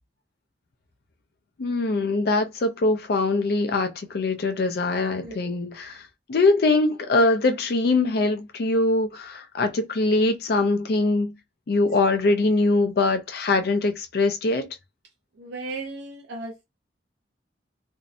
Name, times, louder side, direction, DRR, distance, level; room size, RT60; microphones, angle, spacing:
voice 1, 1.6-6.0 6.3-11.3 11.7-14.8, left 2 dB, 60° left, 0.4 m, -22 dB
voice 2, 5.2-5.6 15.4-16.6, right 3 dB, 85° right, 0.5 m, -36 dB
2.6 x 2.0 x 2.6 m
head